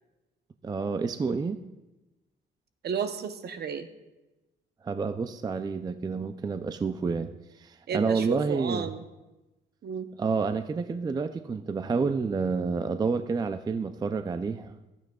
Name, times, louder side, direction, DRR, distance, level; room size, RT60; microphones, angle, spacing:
voice 1, 0.6-1.6 4.8-8.9 10.2-14.8, right 4 dB, 20° right, 10 dB, 0.3 m, -29 dB
voice 2, 2.8-3.9 7.9-9.0 9.8-10.1, right 6 dB, 55° right, 9 dB, 0.8 m, -32 dB
12.5 x 8.8 x 2.3 m, 1.0 s
cardioid pair, 90°, 20 cm